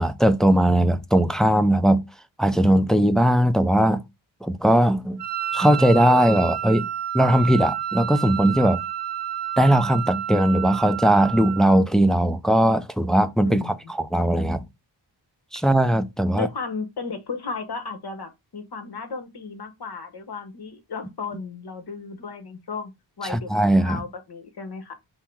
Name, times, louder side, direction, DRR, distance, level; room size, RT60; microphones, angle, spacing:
voice 1, 0.0-2.0 2.4-4.0 4.4-5.2 5.5-6.9 7.1-8.8 9.6-13.6 14.1-14.7 15.5-16.5 23.3-24.0, right 1 dB, ahead, 0.4 m, -19 dB
Wind instrument woodwind instrument, 5.2-11.8, right 10 dB, 65° right, 0.8 m, -30 dB
voice 2, 13.4-13.9 16.3-22.9 23.2-24.9, left 4 dB, 55° left, 1.1 m, -34 dB
5.5 x 2.0 x 4.5 m
wide cardioid pair, 75°, 47 cm